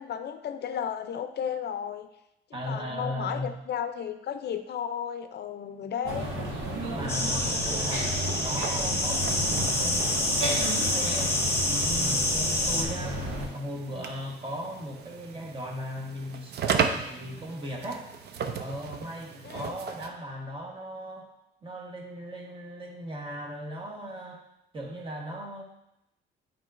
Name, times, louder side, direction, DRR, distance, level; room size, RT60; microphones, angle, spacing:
voice 1, 0.0-2.1 2.7-6.4 19.4-19.8, left 8 dB, 55° left, 8 dB, 0.5 m, -34 dB
voice 2, 2.5-3.5 6.9-8.1 8.4-11.3 11.6-13.2 13.5-18.1 18.6-21.3 21.6-24.4 24.7-25.6, equal, 25° right, 0 dB, 1.3 m, -37 dB
sound 1, 6.0-13.5, equal, 80° right, 1.5 m, -32 dB
sound 2, 7.1-12.8, left 1 dB, 10° left, 1.2 m, -27 dB
sound 3, 8.5-20.1, right 6 dB, 55° right, 0.6 m, -36 dB
8.3 x 4.5 x 2.5 m, 0.85 s
cardioid pair, 90°, 20 cm